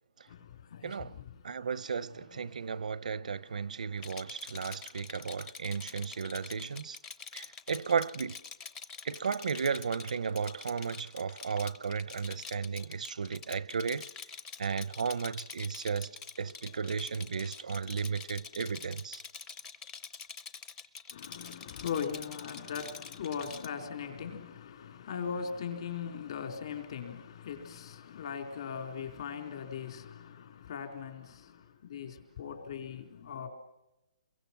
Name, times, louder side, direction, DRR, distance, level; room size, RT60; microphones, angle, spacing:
voice 1, 0.3-1.7 2.4-2.5 21.1-33.5, left 7 dB, 45° left, 4.0 m, -40 dB
voice 2, 0.8-1.2 1.4-7.0 7.3-8.4 9.0-14.1 14.6-19.2, right 6 dB, 85° right, 0.7 m, -34 dB
Rattle, 4.0-23.7, left 5 dB, 15° left, 0.8 m, -46 dB
29.0 x 23.0 x 6.0 m
hypercardioid pair, 170°, 4 cm